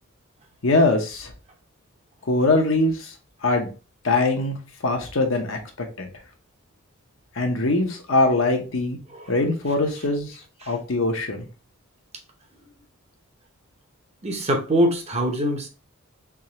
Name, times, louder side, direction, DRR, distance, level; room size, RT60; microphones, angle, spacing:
voice 1, 0.6-1.3 2.3-3.1 3.4-3.7 4.0-4.6 4.8-6.1 7.4-9.0 9.3-10.3 10.7-11.5, left 2 dB, 70° left, 0.9 m, -22 dB
voice 2, 14.2-15.7, equal, 30° right, 0.8 m, -23 dB
3.5 x 3.2 x 2.9 m
head